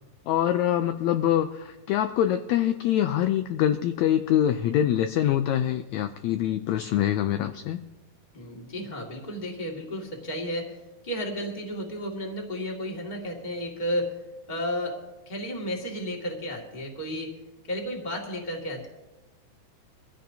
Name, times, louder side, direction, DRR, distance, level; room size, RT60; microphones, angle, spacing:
voice 1, 0.3-7.8, left 11 dB, 85° left, 8 dB, 1.6 m, -24 dB
voice 2, 8.3-10.8 11.0-14.2 14.5-15.0 15.2-17.3 17.7-18.9, equal, 15° left, 0 dB, 1.8 m, -32 dB
23.0 x 15.5 x 2.8 m, 1.1 s
omnidirectional pair, 3.8 m